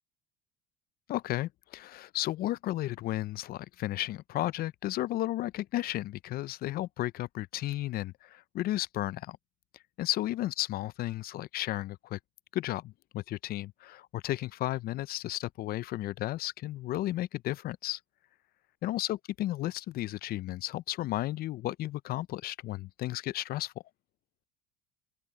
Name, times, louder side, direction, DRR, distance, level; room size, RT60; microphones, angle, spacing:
voice 1, 1.1-9.4 10.0-12.2 12.5-18.0 18.8-23.7, left 15 dB, 50° left, 0.5 m, -33 dB
open air
supercardioid pair, 90°, 20 cm